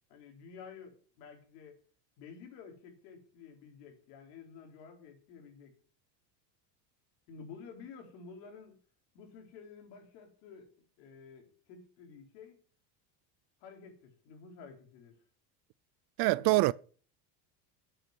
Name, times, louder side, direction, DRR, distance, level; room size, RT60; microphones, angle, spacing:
voice 1, 0.1-1.8 2.2-5.8 7.3-8.8 9.1-10.7 11.0-12.6 13.6-15.2 16.4-16.6, left 5 dB, 80° left, 4.0 m, -51 dB
voice 2, 16.2-16.7, right 21 dB, 50° right, 0.5 m, -24 dB
10.0 x 7.8 x 6.1 m
supercardioid pair, 110°, 49 cm